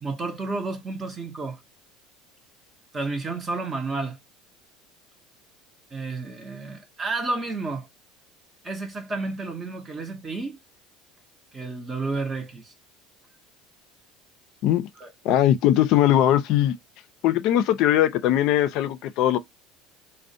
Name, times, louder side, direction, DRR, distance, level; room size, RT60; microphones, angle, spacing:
voice 1, 0.0-1.6 2.9-4.2 5.9-7.9 8.6-10.6 11.5-12.7 15.0-15.1, right 3 dB, 25° right, 0.5 m, -31 dB
voice 2, 15.2-16.7 17.2-19.4, left 12 dB, 65° left, 0.3 m, -20 dB
2.5 x 2.0 x 2.5 m
supercardioid pair, 95°, 0 cm